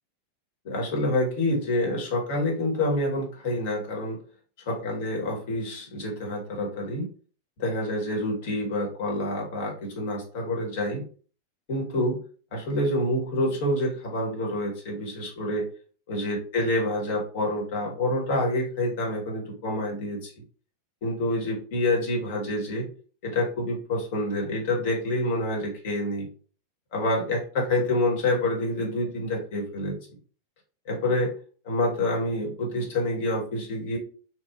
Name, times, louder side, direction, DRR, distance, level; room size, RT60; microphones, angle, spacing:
voice 1, 0.6-4.2 4.7-7.1 7.6-11.0 11.7-12.2 12.5-15.7 16.1-20.3 21.0-22.9 23.2-26.3 26.9-30.0 30.9-31.3 31.6-34.0, left 1 dB, 50° left, -1 dB, 1.1 m, -27 dB
2.9 x 2.3 x 2.4 m, 0.41 s
figure-of-eight pair, 90°, 0 cm